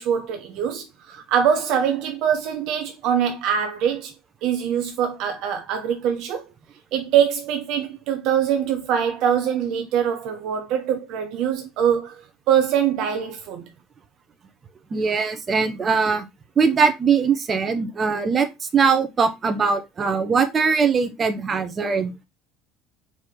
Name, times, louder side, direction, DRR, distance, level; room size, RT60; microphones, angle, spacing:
voice 1, 0.0-4.1 4.4-6.4 6.9-12.1 12.5-13.7, right 8 dB, 55° right, 0.6 m, -23 dB
voice 2, 14.9-16.3 16.6-22.1, right 5 dB, 30° right, 0.9 m, -21 dB
4.4 x 2.9 x 3.8 m
figure-of-eight pair, 65°, 0 cm